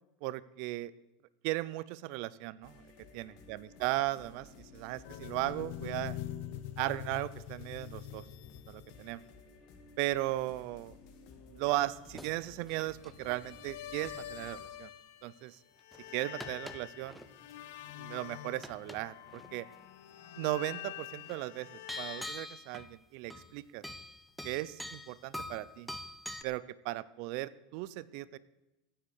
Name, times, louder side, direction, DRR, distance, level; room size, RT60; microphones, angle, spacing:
voice 1, 0.2-0.9 1.4-2.8 3.1-6.2 6.8-8.2 8.7-9.2 10.0-11.0 11.5-14.9 15.2-15.6 16.1-17.2 18.0-19.7 20.4-21.7 22.0-23.8 24.4-25.9 26.4-28.4, right 17 dB, 60° right, 17 dB, 0.7 m, -36 dB
sound 1, 2.6-14.6, left 3 dB, 55° left, 2.6 m, -56 dB
sound 2, 5.0-9.3 13.1-15.5 15.8-22.3, left 12 dB, 70° left, 1.0 m, -45 dB
sound 3, 11.7-12.4 12.7-13.2 14.5-14.6 15.9-17.5 17.8-18.3 18.6-19.0 19.3-19.5 21.3-21.4 21.9-23.0 23.3-23.5 23.8-26.4, left 1 dB, ahead, 1.0 m, -45 dB
16.0 x 8.0 x 6.7 m, 0.97 s
supercardioid pair, 130°, 0 cm